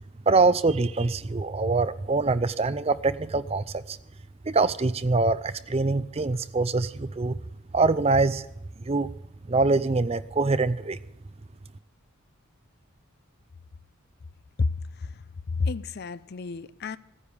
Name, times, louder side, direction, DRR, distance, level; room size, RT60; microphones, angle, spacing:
voice 1, 0.3-4.0 4.5-7.3 7.7-8.4 8.8-9.1 9.5-11.0, right 3 dB, 25° right, 0.5 m, -24 dB
voice 2, 14.6-15.2 15.5-17.0, left 4 dB, 45° left, 0.5 m, -30 dB
15.5 x 9.8 x 7.0 m
head